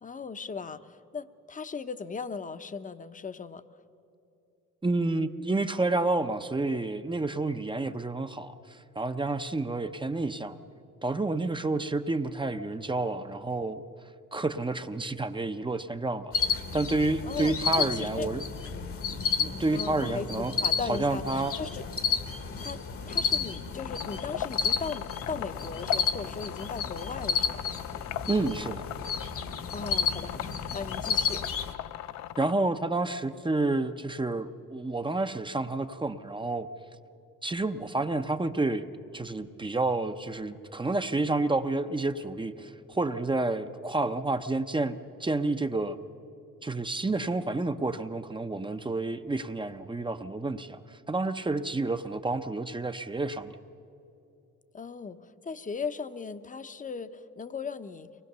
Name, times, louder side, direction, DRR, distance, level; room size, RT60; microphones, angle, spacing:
voice 1, 0.0-3.6 17.2-18.3 19.7-21.8 22.6-27.6 29.7-31.4 54.7-58.1, left 5 dB, 25° left, 11 dB, 0.8 m, -38 dB
voice 2, 4.8-10.6 11.0-13.8 14.3-16.3 16.7-18.4 19.4-20.5 20.9-21.5 28.3-28.8 32.4-36.7 37.4-38.9 39.1-46.0 46.6-53.5, right 2 dB, 15° right, 9 dB, 0.7 m, -29 dB
sound 1, 16.3-31.7, left 6 dB, 50° left, 1.3 m, -32 dB
sound 2, 23.7-32.5, left 12 dB, 65° left, 0.5 m, -39 dB
23.5 x 19.5 x 6.8 m, 2.7 s
cardioid pair, 90°, 30 cm